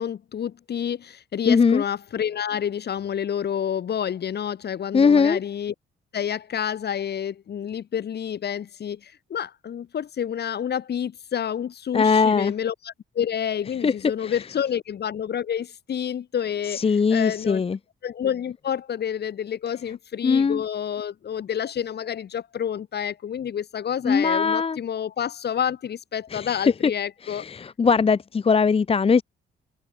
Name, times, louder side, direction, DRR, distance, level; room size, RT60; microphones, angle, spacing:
voice 1, 0.0-5.7 6.1-16.8 17.1-17.6 18.0-27.5, left 9 dB, 55° left, 2.3 m, -29 dB
voice 2, 1.5-1.8 4.9-5.4 11.9-12.5 13.8-13.9 14.2-14.4 16.6-17.8 20.2-20.6 24.0-24.8 26.3-26.9 27.2-29.2, left 5 dB, 30° left, 0.8 m, -20 dB
cardioid pair, 90°, 20 cm